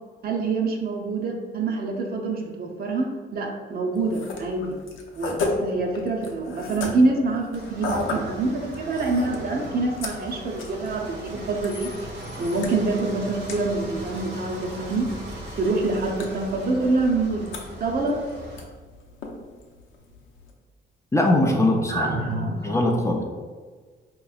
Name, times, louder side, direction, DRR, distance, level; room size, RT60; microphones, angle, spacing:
voice 1, 0.2-4.8 5.2-11.9 12.4-15.1 15.6-17.5 17.8-18.2 21.9-22.8, right 3 dB, 50° right, 1 dB, 0.7 m, -26 dB
sound 1, 3.9-20.5, left 3 dB, 75° left, 0.7 m, -37 dB
sound 2, 7.5-18.6, right 1 dB, 75° right, 1.1 m, -39 dB
voice 2, 21.1-22.1 22.6-23.2, left 1 dB, 15° left, 0 dB, 0.5 m, -21 dB
4.5 x 3.0 x 2.4 m, 1.5 s
cardioid pair, 90°, 20 cm